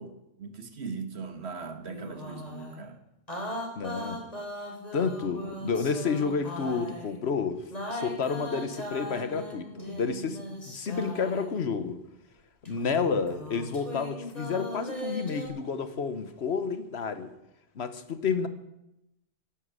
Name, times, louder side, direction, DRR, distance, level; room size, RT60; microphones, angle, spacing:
voice 1, 0.0-3.0, right 5 dB, 70° right, 8 dB, 1.7 m, -39 dB
sound 1, 1.9-2.8 3.3-7.2 7.7-11.6 12.6-15.5, left 1 dB, 35° left, 3.6 m, -39 dB
voice 2, 3.8-4.2 4.9-7.6 7.9-12.0 12.6-17.3 17.7-18.5, left 5 dB, 70° left, 11 dB, 1.3 m, -30 dB
12.0 x 11.5 x 8.1 m, 0.88 s
omnidirectional pair, 1.1 m